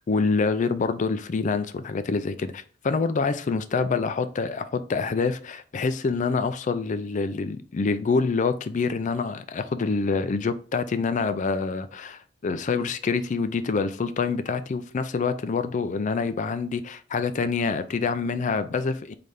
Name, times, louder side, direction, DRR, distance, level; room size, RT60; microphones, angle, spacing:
voice 1, 0.1-19.1, left 4 dB, 40° left, 0.4 m, -26 dB
3.9 x 3.3 x 3.4 m
head